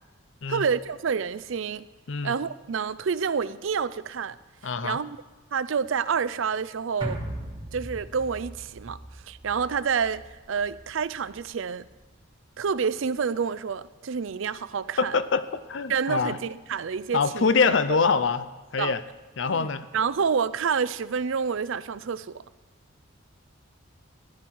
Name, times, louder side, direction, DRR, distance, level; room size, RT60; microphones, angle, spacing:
voice 1, 0.5-1.8 2.2-4.4 4.8-5.2 5.5-7.2 7.7-9.0 9.3-10.2 10.5-11.9 12.6-15.1 15.9-17.5 17.9-18.0 18.8-18.9 19.5-19.7 19.9-22.4, right 6 dB, 65° right, 15 dB, 0.4 m, -28 dB
voice 2, 4.6-5.0 15.0-15.4 15.7-16.4 17.1-18.5 18.7-19.0 19.4-19.9, left 5 dB, 60° left, 13 dB, 0.6 m, -24 dB
sound 1, 7.0-11.5 11.8-11.9, right 1 dB, 20° right, 1.4 m, -39 dB
15.0 x 11.5 x 4.6 m, 1.3 s
head